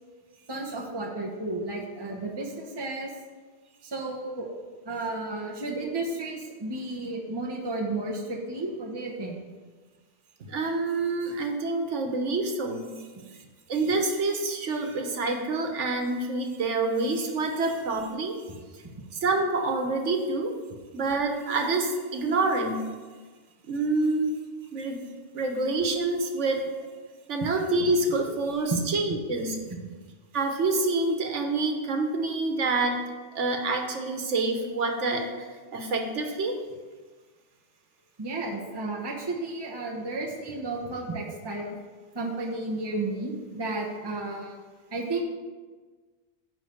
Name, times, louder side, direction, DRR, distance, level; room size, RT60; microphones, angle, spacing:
voice 1, 0.5-3.1 3.8-4.5 4.8-9.4 13.2-13.3 18.5-18.6 28.7-28.8 29.7-29.9 38.2-41.8 42.1-44.5 44.9-45.2, right 2 dB, 25° right, -2 dB, 0.9 m, -33 dB
voice 2, 10.5-12.9 13.7-18.4 19.2-20.5 20.9-22.9 23.7-24.3 24.7-25.1 25.3-26.9 27.3-29.6 30.3-33.0 33.3-35.3 35.7-36.6, right 3 dB, 85° right, 4 dB, 1.4 m, -27 dB
10.0 x 4.0 x 6.5 m, 1.4 s
omnidirectional pair, 1.2 m